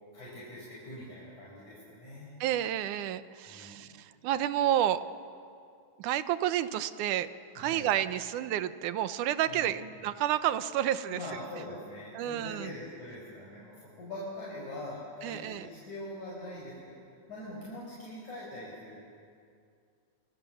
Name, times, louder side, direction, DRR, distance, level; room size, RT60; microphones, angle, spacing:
voice 1, 0.1-2.3 3.5-3.8 7.5-7.9 9.5-9.8 11.1-17.0 17.3-19.0, left 1 dB, 65° left, -6 dB, 7.0 m, -43 dB
voice 2, 2.4-5.0 6.0-7.3 7.6-11.2 12.1-12.7 15.2-15.7, right 11 dB, 80° right, 12 dB, 2.4 m, -30 dB
29.0 x 27.5 x 7.1 m, 2.4 s
omnidirectional pair, 3.6 m